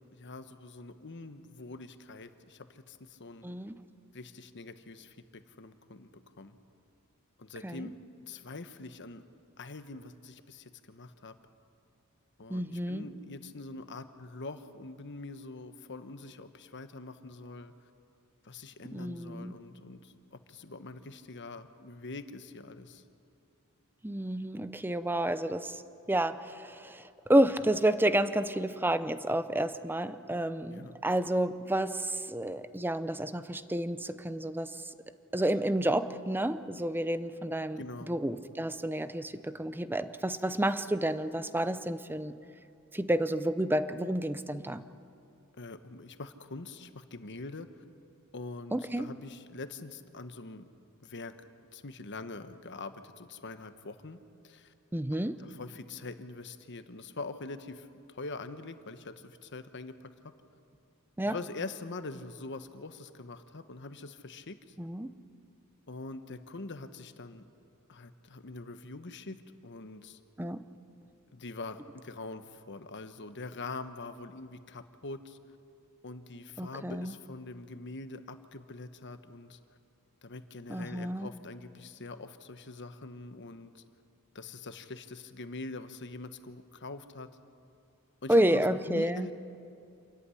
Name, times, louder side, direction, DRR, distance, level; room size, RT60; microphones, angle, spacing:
voice 1, 0.1-3.5 4.1-6.6 7.4-8.0 8.3-9.2 9.6-11.3 12.4-17.7 18.4-23.0 30.7-31.0 37.8-38.1 45.6-47.7 48.3-50.7 51.0-51.3 51.7-54.7 55.4-60.3 61.2-64.6 65.9-67.5 67.9-70.2 71.3-75.4 76.0-79.6 80.2-83.8 84.3-87.3 88.2-88.6 88.9-89.3, left 3 dB, 55° left, 10 dB, 1.2 m, -44 dB
voice 2, 3.4-3.8 7.6-7.9 12.5-13.1 18.9-19.6 24.0-25.8 26.1-34.7 35.3-37.8 38.1-42.4 42.9-44.8 48.7-49.1 54.9-55.4 61.2-61.4 64.8-65.1 70.4-70.6 76.6-77.1 80.7-81.3 88.3-89.3, right 1 dB, 10° right, 12 dB, 0.7 m, -30 dB
27.5 x 14.0 x 9.9 m, 2.6 s
head